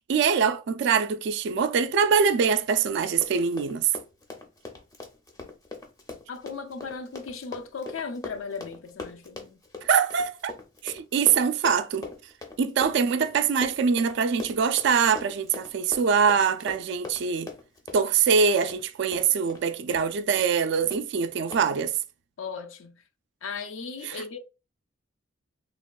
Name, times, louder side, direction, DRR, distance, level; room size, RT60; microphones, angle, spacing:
voice 1, 0.1-3.9 9.8-10.6 10.8-12.1 12.6-17.5 17.9-22.0 24.0-24.2, right 6 dB, 60° right, 0.3 m, -23 dB
Run, 3.0-19.6 19.9-20.1 20.4-20.6 20.9-21.0 21.5-21.6, left 3 dB, 20° left, 0.5 m, -41 dB
voice 2, 6.3-9.6 22.4-22.9 23.4-24.4, left 5 dB, 75° left, 0.4 m, -37 dB
3.4 x 2.2 x 2.3 m
head